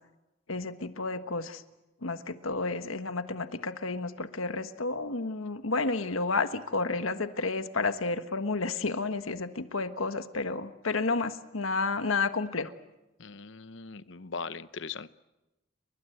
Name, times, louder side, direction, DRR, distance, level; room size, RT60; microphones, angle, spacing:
voice 1, 0.5-1.6 2.0-12.7, left 3 dB, 90° left, 10 dB, 1.5 m, -31 dB
voice 2, 13.2-15.1, left 5 dB, 65° left, 14 dB, 0.9 m, -40 dB
30.0 x 23.0 x 8.0 m, 1.0 s
head